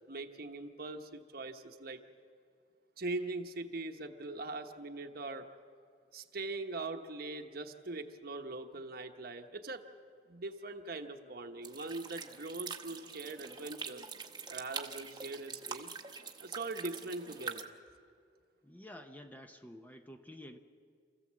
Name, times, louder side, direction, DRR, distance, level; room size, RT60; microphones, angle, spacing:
voice 1, 0.1-2.0 3.0-5.5 6.1-9.8 10.3-14.0 14.5-15.9 16.4-17.7, right 2 dB, 55° right, 5 dB, 1.2 m, -41 dB
sound 1, 11.6-17.6, right 5 dB, 25° right, 1.1 m, -44 dB
voice 2, 18.6-20.6, left 1 dB, 10° left, 6 dB, 0.8 m, -50 dB
28.0 x 15.0 x 7.6 m, 2.2 s
head